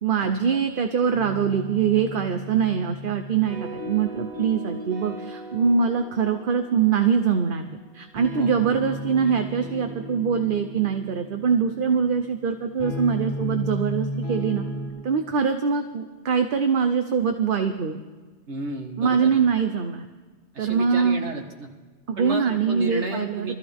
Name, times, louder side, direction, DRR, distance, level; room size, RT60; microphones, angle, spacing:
voice 1, 0.0-14.6 15.0-18.0 19.0-20.1 20.6-21.2 22.1-23.5, right 6 dB, 55° right, 7 dB, 0.9 m, -23 dB
sound 1, 1.1-14.9, equal, 15° left, 6.6 m, -35 dB
voice 2, 18.5-19.4 20.5-21.7 22.2-23.5, right 2 dB, 80° right, 2 dB, 2.2 m, -32 dB
23.5 x 14.5 x 3.6 m, 1.4 s
omnidirectional pair, 1.1 m